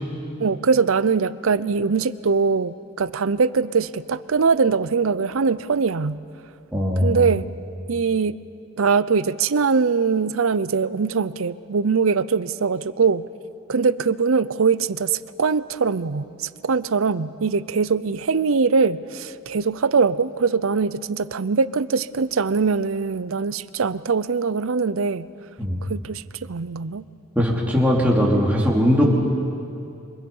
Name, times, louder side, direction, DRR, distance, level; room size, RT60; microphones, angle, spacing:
voice 1, 0.4-6.2 7.0-7.5 7.9-8.4 8.8-13.2 13.7-25.3 25.8-27.0, right 5 dB, 75° right, 16 dB, 0.6 m, -22 dB
voice 2, 6.7-7.3 25.6-25.8 27.3-29.0, equal, 5° right, -3 dB, 2.9 m, -19 dB
27.5 x 25.5 x 5.5 m, 2.6 s
head